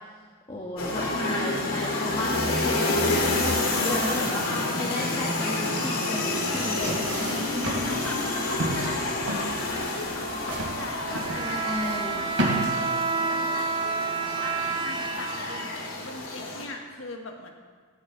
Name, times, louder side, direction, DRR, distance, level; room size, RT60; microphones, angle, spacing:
voice 1, 0.5-7.0 11.3-12.3, left 1 dB, 25° left, -4 dB, 1.3 m, -34 dB
sound 1, 0.8-16.7, left 2 dB, 90° left, 2.1 m, -29 dB
voice 2, 4.6-5.2 7.8-8.2 8.5-12.5 13.0-13.8 14.3-14.5 14.8-17.5, left 2 dB, 70° left, 2 dB, 1.5 m, -41 dB
sound 2, 6.4-12.6, right 1 dB, 70° right, 3.2 m, -33 dB
Bowed string instrument, 11.1-16.2, right 5 dB, 25° right, 0.5 m, -30 dB
16.0 x 10.0 x 4.0 m, 1.5 s
head